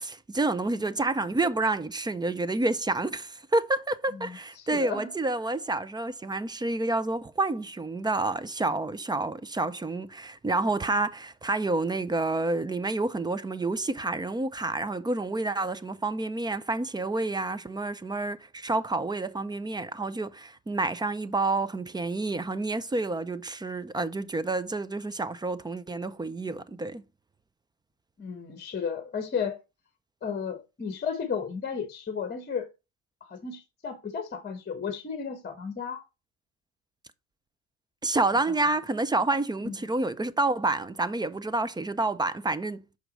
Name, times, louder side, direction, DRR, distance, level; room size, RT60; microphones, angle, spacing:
voice 1, 0.0-27.0 38.0-42.8, right 2 dB, 10° right, 0.5 m, -29 dB
voice 2, 4.1-5.1 28.2-29.6 30.2-32.7 33.2-36.0 39.6-39.7, left 6 dB, 20° left, 1.2 m, -34 dB
6.2 x 4.5 x 4.0 m
hypercardioid pair, 75°, 44 cm